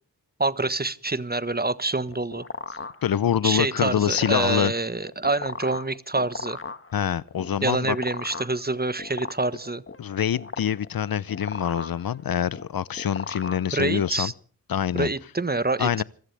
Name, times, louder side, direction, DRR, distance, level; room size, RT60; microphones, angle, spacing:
voice 1, 0.4-2.4 3.4-6.6 7.6-9.8 13.7-14.3 14.9-16.0, right 3 dB, 25° right, 1.3 m, -26 dB
sound 1, 1.8-14.2, left 3 dB, 35° left, 1.6 m, -38 dB
voice 2, 3.0-4.7 6.9-8.0 10.0-14.3 14.7-15.1 15.8-16.0, left 9 dB, 65° left, 0.7 m, -25 dB
26.5 x 15.0 x 3.4 m
cardioid pair, 45°, 38 cm